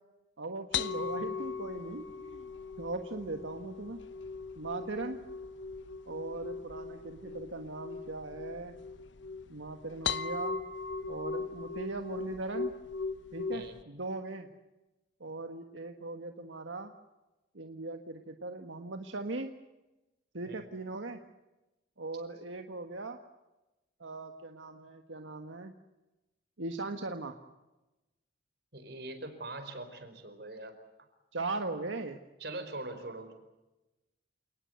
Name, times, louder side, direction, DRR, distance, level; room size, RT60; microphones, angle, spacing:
voice 1, 0.4-2.5 2.8-4.0 4.5-5.2 6.1-8.7 9.5-10.6 11.1-12.7 13.3-14.5 15.2-16.9 17.5-19.5 20.3-21.2 22.0-23.2 24.0-25.7 26.6-27.4 31.3-32.2, right 2 dB, 85° right, 6 dB, 1.6 m, -39 dB
sound 1, 0.7-13.8, left 5 dB, 75° left, 1.0 m, -39 dB
voice 2, 28.7-30.7 32.4-33.4, right 2 dB, 55° right, 8 dB, 4.8 m, -42 dB
28.5 x 19.5 x 8.1 m, 1.0 s
head